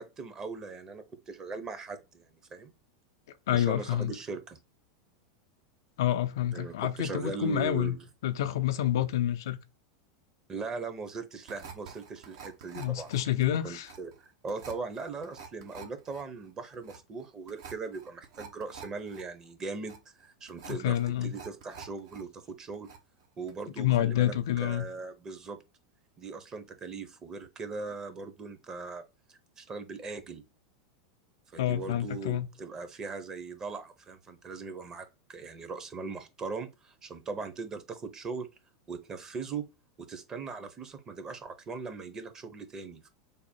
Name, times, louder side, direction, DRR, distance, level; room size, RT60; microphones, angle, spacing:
voice 1, 0.0-2.7 3.5-4.6 6.5-8.0 10.5-13.1 13.6-22.9 23.4-25.6 26.2-29.0 29.6-30.4 31.5-38.5 38.9-39.6 40.0-43.1, right 4 dB, 25° right, 0.8 m, -39 dB
voice 2, 3.5-4.1 6.0-9.6 12.7-13.9 20.6-21.4 23.8-24.9 31.6-32.5, left 12 dB, 65° left, 0.4 m, -28 dB
sound 1, 11.5-22.2 22.5-23.2 23.5-23.6, right 6 dB, 65° right, 0.8 m, -48 dB
3.4 x 2.1 x 4.2 m
hypercardioid pair, 90°, 2 cm